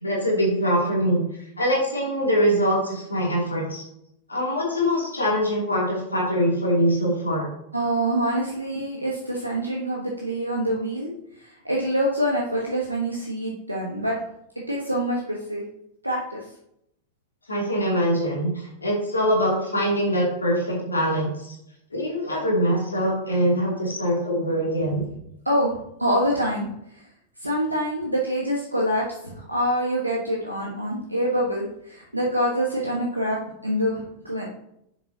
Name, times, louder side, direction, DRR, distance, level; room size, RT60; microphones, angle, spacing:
voice 1, 0.0-1.2 1.6-3.8 4.3-7.5 17.5-21.5 21.9-25.0, equal, 80° left, -3 dB, 2.8 m, -23 dB
voice 2, 7.7-11.1 11.3-14.2 14.5-15.6 16.0-16.5 25.4-27.1 27.4-34.5, equal, 85° right, -2 dB, 1.3 m, -26 dB
10.5 x 7.1 x 2.8 m, 0.76 s
figure-of-eight pair, 90°, 0 cm